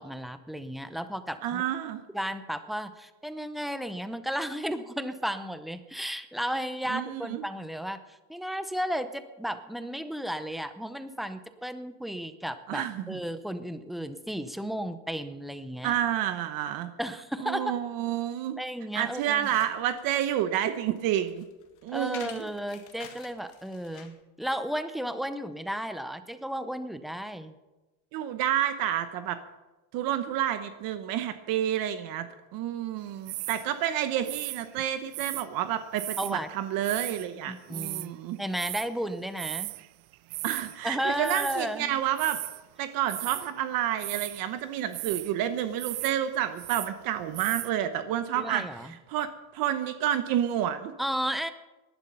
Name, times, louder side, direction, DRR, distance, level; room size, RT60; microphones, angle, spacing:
voice 1, 0.0-1.6 2.1-15.9 17.0-17.7 18.6-19.5 21.9-27.5 36.2-36.5 37.5-38.1 38.4-39.7 40.8-42.0 48.4-48.9 51.0-51.5, equal, ahead, 10 dB, 0.6 m, -34 dB
voice 2, 1.4-2.0 6.9-7.4 12.7-13.2 15.8-16.9 17.4-18.6 18.9-21.5 21.8-22.5 28.1-29.4 29.9-32.3 32.5-38.4 40.4-42.4 42.8-50.9, right 11 dB, 55° right, 10 dB, 1.0 m, -29 dB
sound 1, 19.0-24.2, left 9 dB, 45° left, 1.7 m, -49 dB
sound 2, 33.3-33.7 34.3-35.5 36.0-36.3 36.8-37.3 37.5-38.1 38.5-38.9 39.4-39.9 40.1-40.8 41.2-41.7 42.2-42.6 43.0-43.5 44.0-44.4 44.9-45.3 45.7-46.2 46.4-46.9 47.3-47.7, right 24 dB, 90° right, 0.6 m, -36 dB
18.5 x 11.5 x 5.6 m, 1.1 s
cardioid pair, 160°, 42 cm